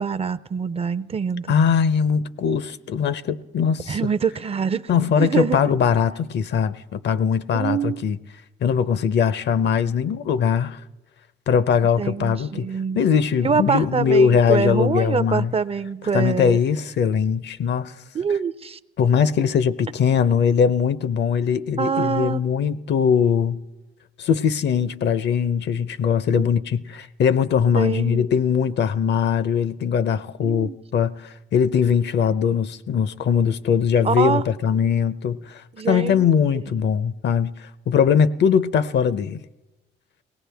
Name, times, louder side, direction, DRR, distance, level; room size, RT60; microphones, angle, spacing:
voice 1, 0.0-1.5 3.9-5.6 7.5-8.1 12.0-13.0 13.4-16.6 18.1-18.8 21.8-22.4 26.3-26.5 27.7-28.3 30.4-30.8 34.0-34.4 35.8-36.3, right 6 dB, 30° right, 0.4 m, -25 dB
voice 2, 1.5-4.0 4.9-8.2 8.6-10.8 11.5-12.7 12.9-15.5 16.1-17.9 19.0-23.6 24.2-39.4, left 7 dB, 60° left, 0.6 m, -21 dB
22.5 x 18.0 x 3.4 m
cardioid pair, 90°, 20 cm